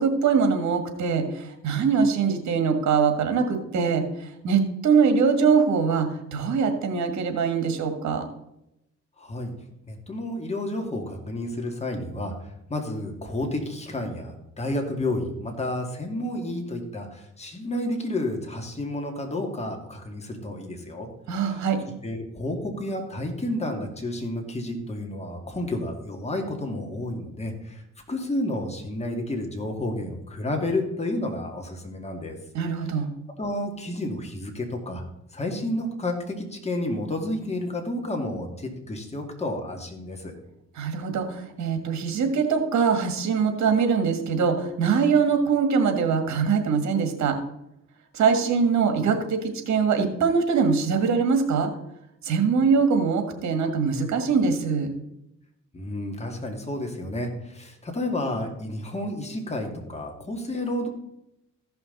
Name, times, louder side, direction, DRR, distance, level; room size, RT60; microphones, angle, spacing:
voice 1, 0.0-8.3 21.3-21.8 32.5-33.1 40.8-47.4 48.1-51.7 52.2-54.9, right 5 dB, 70° right, 6 dB, 1.8 m, -23 dB
voice 2, 9.2-9.5 9.9-12.3 12.7-21.1 21.4-21.6 22.0-27.8 28.1-32.4 33.4-35.0 35.3-40.4 55.7-60.9, left 1 dB, 20° left, 2 dB, 2.3 m, -31 dB
15.0 x 5.7 x 4.0 m, 0.84 s
cardioid pair, 90°, 30 cm